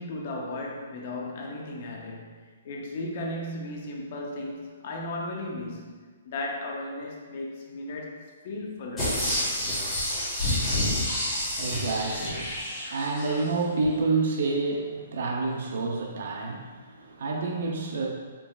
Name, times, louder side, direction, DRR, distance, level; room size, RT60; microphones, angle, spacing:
voice 1, 0.0-6.0 6.2-9.2, left 2 dB, 40° left, -1 dB, 0.6 m, -35 dB
sound 1, 9.0-13.4 13.8-13.9, left 1 dB, 5° left, 1.1 m, -29 dB
voice 2, 11.6-18.1, right 3 dB, 55° right, 0 dB, 0.5 m, -29 dB
4.6 x 3.1 x 2.3 m, 1.5 s
hypercardioid pair, 175°, 0 cm